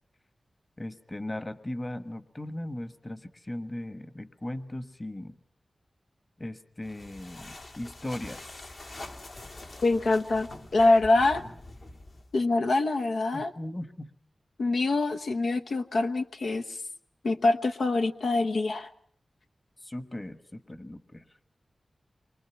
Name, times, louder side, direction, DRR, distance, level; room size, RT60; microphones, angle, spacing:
voice 1, 0.8-5.4 6.4-8.7 13.3-14.1 19.8-21.3, left 1 dB, 25° left, 11 dB, 1.3 m, -38 dB
sound 1, 6.8-12.4, left 2 dB, 60° left, 2.1 m, -45 dB
voice 2, 9.8-11.4 12.3-13.5 14.6-16.6 17.2-18.9, left 2 dB, 85° left, 5 dB, 1.0 m, -25 dB
28.5 x 23.5 x 5.8 m, 0.62 s
wide cardioid pair, 115°, 0 cm